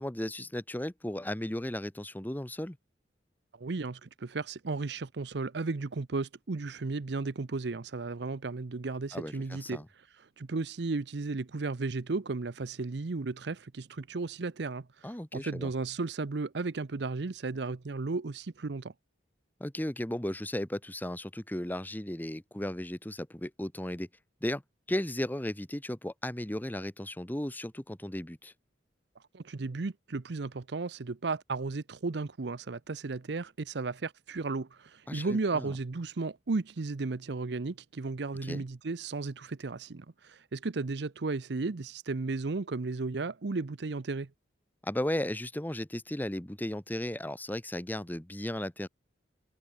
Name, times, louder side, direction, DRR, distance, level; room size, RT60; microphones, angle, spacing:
voice 1, 0.0-2.8 9.1-9.9 15.0-15.7 19.6-24.1 24.4-24.6 24.9-28.5 35.1-35.7 38.4-38.6 44.8-48.9, left 1 dB, 10° left, 1.0 m, -35 dB
voice 2, 3.6-9.8 10.4-18.9 29.3-44.3, right 3 dB, 65° right, 0.7 m, -34 dB
head